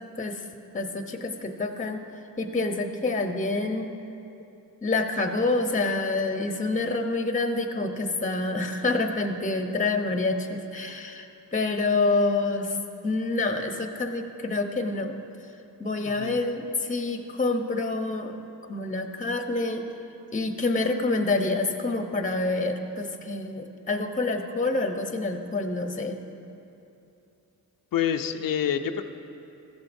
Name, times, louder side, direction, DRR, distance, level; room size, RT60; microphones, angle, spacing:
voice 1, 0.7-2.0 2.4-3.9 4.8-12.8 13.0-15.1 15.8-18.4 18.7-19.9 20.3-26.2, left 3 dB, 20° left, 5 dB, 0.8 m, -27 dB
voice 2, 27.9-29.0, left 9 dB, 60° left, 7 dB, 0.6 m, -27 dB
14.5 x 13.5 x 2.6 m, 2.8 s
cardioid pair, 90°, 39 cm